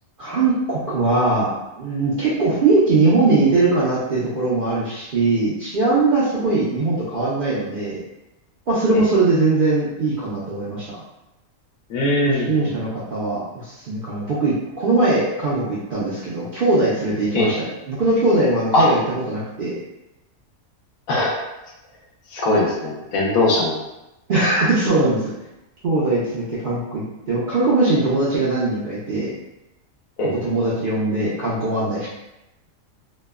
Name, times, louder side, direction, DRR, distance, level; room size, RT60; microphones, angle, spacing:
voice 1, 0.2-1.5 1.8-8.0 8.7-10.8 12.2-19.0 19.3-19.8 24.3-25.3 25.8-29.3 30.3-32.1, right 2 dB, 60° right, -9 dB, 0.5 m, -20 dB
voice 2, 11.9-12.7 17.3-17.5 18.7-18.9 21.1-21.4 22.3-23.7 30.2-30.3, left 2 dB, 75° left, -3 dB, 1.1 m, -20 dB
3.0 x 2.1 x 2.2 m, 0.94 s
omnidirectional pair, 1.5 m